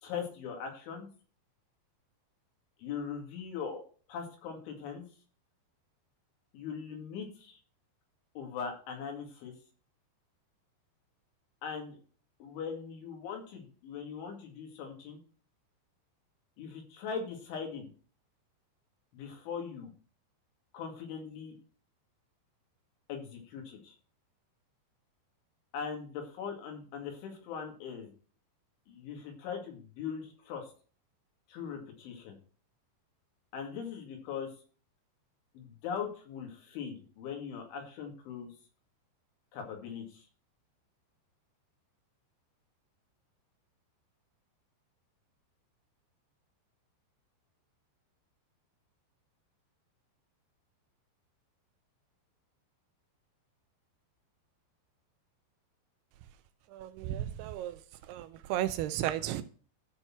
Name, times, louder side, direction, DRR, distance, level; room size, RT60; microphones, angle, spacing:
voice 1, 0.0-1.1 2.8-3.8 4.1-5.0 6.5-7.6 8.4-9.5 11.6-12.0 12.4-15.2 16.6-17.9 19.1-19.9 20.7-21.5 23.1-24.0 25.7-28.1 28.9-30.7 31.5-32.4 33.5-34.5 35.5-38.5 39.5-40.2, left 6 dB, 85° left, 2 dB, 4.6 m, -40 dB
voice 2, 56.7-57.8 58.1-59.4, right 12 dB, 85° right, 10 dB, 2.3 m, -34 dB
13.0 x 4.4 x 5.9 m, 0.40 s
omnidirectional pair, 5.4 m